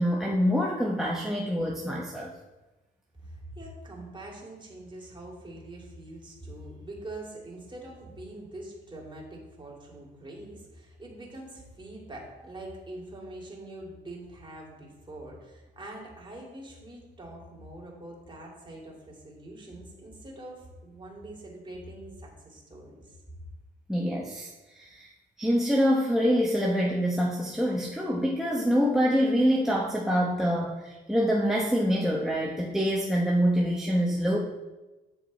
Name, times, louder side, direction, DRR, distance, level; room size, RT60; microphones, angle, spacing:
voice 1, 0.0-2.3 23.9-24.5 24.7-25.1 25.4-34.4, equal, ahead, -1 dB, 1.0 m, -25 dB
voice 2, 3.2-23.2, right 1 dB, 25° right, -2 dB, 2.9 m, -44 dB
8.2 x 6.9 x 4.2 m, 1.1 s
cardioid pair, 90°, 20 cm